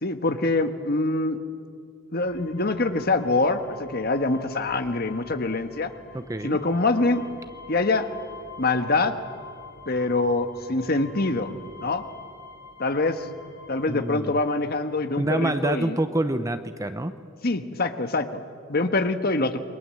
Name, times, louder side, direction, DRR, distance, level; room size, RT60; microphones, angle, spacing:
voice 1, 0.0-1.4 2.1-5.9 6.4-7.2 7.7-8.1 8.6-9.1 9.9-11.5 11.8-12.0 12.8-13.3 13.7-16.0 17.4-19.6, left 2 dB, 50° left, 8 dB, 1.3 m, -24 dB
sound 1, 2.2-15.6, left 4 dB, 85° left, 7.2 m, -46 dB
voice 2, 6.1-6.6 13.9-14.3 15.2-17.1, right 1 dB, 15° right, 10 dB, 0.8 m, -26 dB
28.5 x 22.5 x 7.7 m, 2.3 s
head